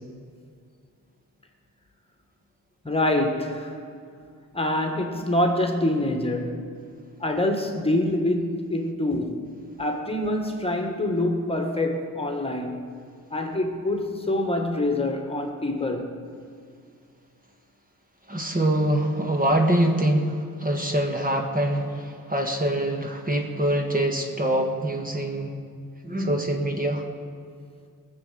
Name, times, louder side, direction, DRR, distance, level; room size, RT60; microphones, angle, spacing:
voice 1, 2.8-3.8 4.5-6.7 7.2-9.4 9.8-12.9 13.3-16.2, left 1 dB, 15° left, 1.7 m, -25 dB
voice 2, 18.3-25.5 26.0-27.0, right 1 dB, 25° right, 1.6 m, -24 dB
18.5 x 7.0 x 7.7 m
cardioid pair, 90°, 33 cm